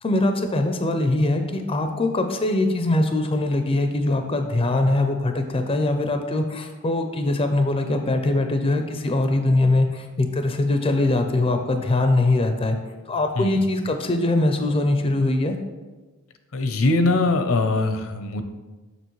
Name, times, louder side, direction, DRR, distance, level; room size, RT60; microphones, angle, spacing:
voice 1, 0.0-12.8 13.1-15.6, left 2 dB, 25° left, 6 dB, 0.4 m, -22 dB
voice 2, 16.5-18.4, left 2 dB, 70° left, 8 dB, 0.6 m, -22 dB
6.8 x 6.2 x 3.1 m, 1.2 s
head